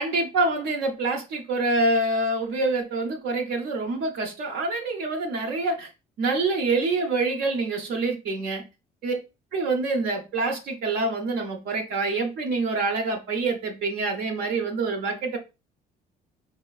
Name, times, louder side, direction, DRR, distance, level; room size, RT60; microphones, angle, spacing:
voice 1, 0.0-5.9 6.2-8.6 9.0-9.2 9.5-15.4, right 3 dB, 70° right, 0.8 m, -26 dB
4.3 x 2.8 x 2.3 m
cardioid pair, 110°, 17 cm